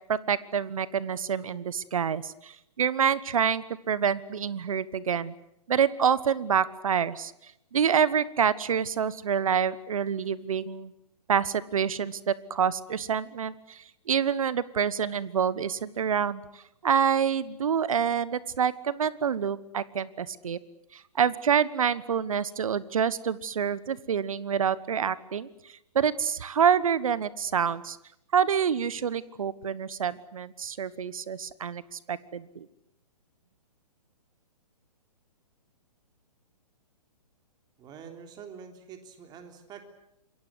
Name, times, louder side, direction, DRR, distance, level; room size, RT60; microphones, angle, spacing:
voice 1, 0.1-5.4 5.7-10.9 11.3-16.4 16.8-20.6 20.9-28.0 28.3-32.7, right 7 dB, 60° right, 18 dB, 1.2 m, -27 dB
voice 2, 37.8-39.9, right 7 dB, 20° right, 6 dB, 3.5 m, -46 dB
27.0 x 22.5 x 7.9 m, 0.81 s
figure-of-eight pair, 125°, 20 cm